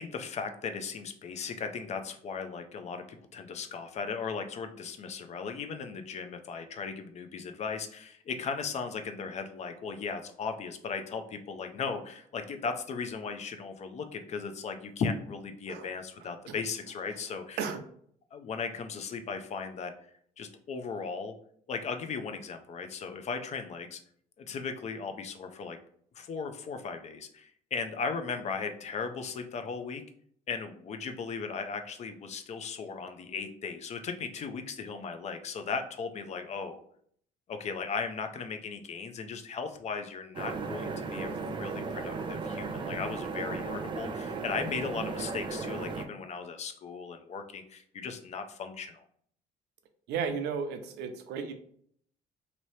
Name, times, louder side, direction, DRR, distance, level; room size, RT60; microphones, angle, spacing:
voice 1, 0.0-17.6 18.3-19.9 20.4-21.3 21.7-24.0 24.4-25.8 26.1-30.0 30.5-36.8 37.5-49.0, left 5 dB, 40° left, 7 dB, 0.5 m, -37 dB
sound 1, 40.3-46.1, right 4 dB, 30° right, 0.4 m, -36 dB
voice 2, 50.1-51.5, right 6 dB, 80° right, 7 dB, 0.6 m, -34 dB
2.9 x 2.7 x 3.1 m, 0.63 s
cardioid pair, 110°, 17 cm